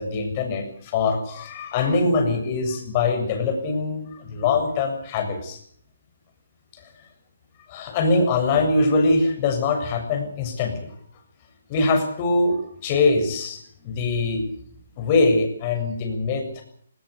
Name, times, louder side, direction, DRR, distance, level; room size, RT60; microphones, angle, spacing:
voice 1, 0.0-5.6 6.7-6.8 7.7-10.9 11.7-14.5 15.0-16.6, left 3 dB, 35° left, 5 dB, 7.2 m, -23 dB
19.5 x 19.0 x 8.4 m, 0.63 s
hypercardioid pair, 150°, 0 cm